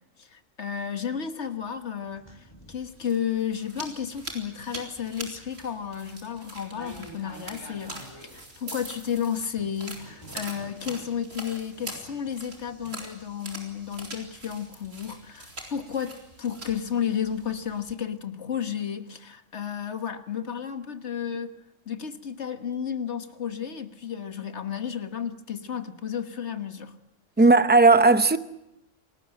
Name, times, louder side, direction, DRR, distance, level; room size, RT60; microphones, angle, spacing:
voice 1, 0.2-21.5 21.8-26.9 27.4-27.5, left 8 dB, 60° left, 1.7 m, -32 dB
sound 1, 0.8-2.9 3.5-9.1 9.6-12.9, equal, 20° left, 7.6 m, -49 dB
sound 2, 2.7-17.9, right 2 dB, 80° right, 4.5 m, -43 dB
voice 2, 27.4-28.4, right 3 dB, 10° right, 0.7 m, -16 dB
28.0 x 19.5 x 7.8 m
omnidirectional pair, 1.3 m